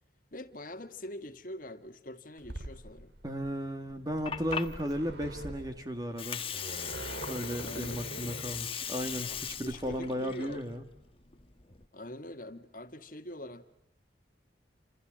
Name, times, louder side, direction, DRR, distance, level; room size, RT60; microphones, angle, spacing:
voice 1, 0.3-3.1 7.5-8.4 9.2-10.6 11.9-13.6, left 1 dB, 45° left, 1.7 m, -44 dB
sound 1, 2.4-10.0, right 1 dB, 65° right, 3.0 m, -45 dB
voice 2, 3.2-6.4 7.3-10.8, equal, 20° right, 1.8 m, -35 dB
Water, 3.9-11.8, left 7 dB, 30° left, 1.3 m, -40 dB
28.5 x 28.0 x 7.6 m
head